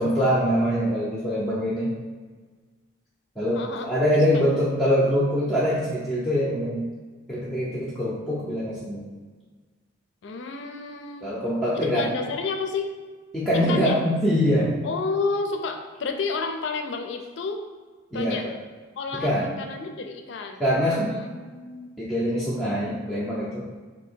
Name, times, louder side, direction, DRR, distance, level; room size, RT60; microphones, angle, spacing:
voice 1, 0.0-1.9 3.4-6.9 7.3-9.0 11.2-12.1 13.3-14.7 18.1-18.5 19.1-19.5 20.6-21.1 22.0-23.6, equal, 5° left, -9 dB, 0.5 m, -24 dB
voice 2, 3.5-3.9 4.5-4.6 10.2-11.3 11.7-12.9 13.7-14.0 14.8-17.6 18.1-18.5 19.0-20.6 21.1-21.9, left 4 dB, 60° left, 5 dB, 0.4 m, -30 dB
2.8 x 2.7 x 4.4 m, 1.4 s
head